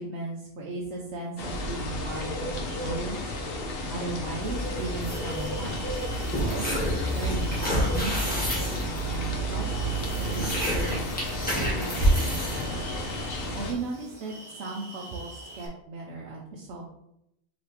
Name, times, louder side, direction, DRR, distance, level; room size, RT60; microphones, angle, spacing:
voice 1, 0.0-3.3 3.9-5.8 6.4-11.0 11.5-12.8 13.6-16.9, right 3 dB, 85° right, -2 dB, 0.9 m, -37 dB
sound 1, 1.4-13.7, equal, 65° left, 0.9 m, -32 dB
sound 2, 4.4-15.7, right 1 dB, 25° right, 0.6 m, -46 dB
sound 3, 5.0-13.8, equal, 10° left, 1.3 m, -30 dB
5.0 x 3.0 x 2.9 m, 0.79 s
omnidirectional pair, 1.1 m